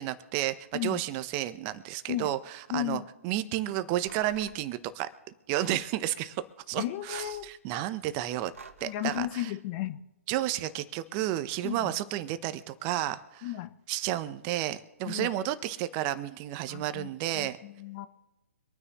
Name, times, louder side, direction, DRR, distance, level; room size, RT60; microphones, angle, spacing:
voice 1, 0.0-5.1 5.5-8.5 8.8-9.5 10.3-13.5 13.9-17.6, right 14 dB, 30° right, 12 dB, 0.8 m, -32 dB
voice 2, 2.7-3.1 5.7-5.8 6.7-7.5 8.8-10.0 11.6-11.9 13.4-13.7 15.1-15.3 16.7-17.1 17.3-18.1, left 14 dB, 30° left, 12 dB, 0.7 m, -34 dB
sound 1, 4.0-4.6 5.6-5.9 6.9-7.5 8.3-9.3, right 5 dB, 65° right, 1.2 m, -49 dB
25.5 x 9.7 x 3.1 m, 1.0 s
figure-of-eight pair, 130°, 8 cm